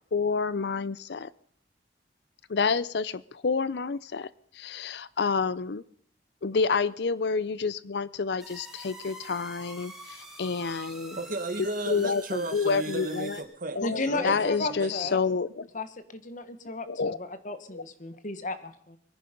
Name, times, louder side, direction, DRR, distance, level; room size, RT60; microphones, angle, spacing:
voice 1, 0.1-1.3 2.5-4.3 4.5-5.8 6.4-11.2 11.9-13.4 13.8-15.5 16.9-17.2 17.7-17.8, left 5 dB, 65° left, 19 dB, 0.6 m, -28 dB
sound 1, 8.4-13.4, right 1 dB, ahead, 2.9 m, -45 dB
voice 2, 11.1-13.8 14.1-15.1, right 2 dB, 50° right, 11 dB, 1.4 m, -34 dB
voice 3, 13.8-15.2 15.7-19.0, left 2 dB, 45° left, 11 dB, 1.5 m, -34 dB
23.0 x 10.5 x 5.3 m, 0.66 s
head